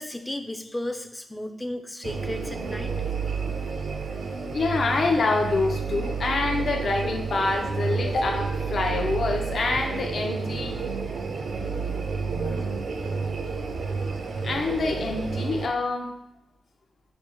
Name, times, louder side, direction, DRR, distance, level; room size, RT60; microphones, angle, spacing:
voice 1, 0.0-2.9, left 1 dB, 10° left, 6 dB, 0.4 m, -34 dB
sound 1, 2.0-15.7, right 5 dB, 65° right, 0.5 m, -30 dB
voice 2, 4.5-10.8 14.4-16.1, left 3 dB, 60° left, 3 dB, 0.7 m, -26 dB
5.0 x 2.0 x 4.5 m, 0.87 s
cardioid pair, 90°, 0 cm